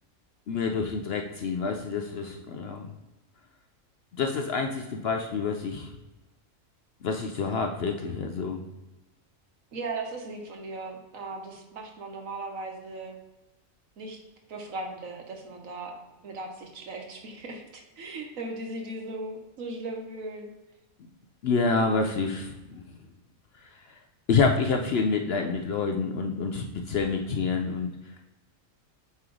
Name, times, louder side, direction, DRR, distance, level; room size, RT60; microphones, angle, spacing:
voice 1, 0.5-2.9 4.2-5.9 7.0-8.6 21.4-22.8 23.6-23.7 24.3-27.9, left 4 dB, 60° left, 4 dB, 0.7 m, -27 dB
voice 2, 9.7-13.2 14.0-14.2 14.5-20.5, right 2 dB, 70° right, 3 dB, 1.4 m, -38 dB
8.5 x 3.1 x 3.8 m, 1.1 s
omnidirectional pair, 1.4 m